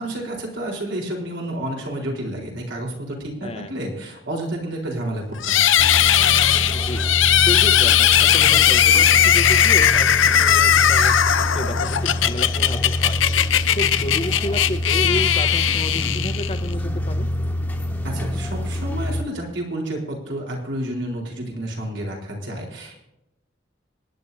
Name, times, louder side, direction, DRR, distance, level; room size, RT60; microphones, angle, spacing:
voice 1, 0.0-5.7 18.0-23.0, right 1 dB, 75° right, 0 dB, 4.1 m, -30 dB
voice 2, 3.4-3.8 6.7-7.1 7.5-11.1 11.5-13.2 13.8-17.3, left 1 dB, 30° left, 7 dB, 1.0 m, -31 dB
sound 1, 5.4-16.7, left 10 dB, 90° left, 0.7 m, -18 dB
sound 2, 5.8-19.2, left 1 dB, 10° left, 1.4 m, -26 dB
26.0 x 10.5 x 2.7 m, 0.88 s
head